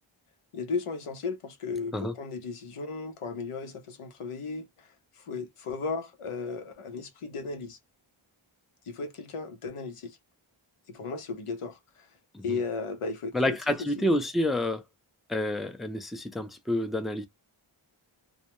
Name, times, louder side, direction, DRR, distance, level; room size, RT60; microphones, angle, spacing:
voice 1, 0.5-4.7 5.2-7.8 8.9-10.2 10.9-12.1 12.4-13.6 14.0-14.1, left 4 dB, 85° left, 0.7 m, -35 dB
voice 2, 13.3-14.8 15.3-17.3, left 1 dB, ahead, 0.4 m, -28 dB
2.3 x 2.1 x 2.9 m
wide cardioid pair, 60°, 50 cm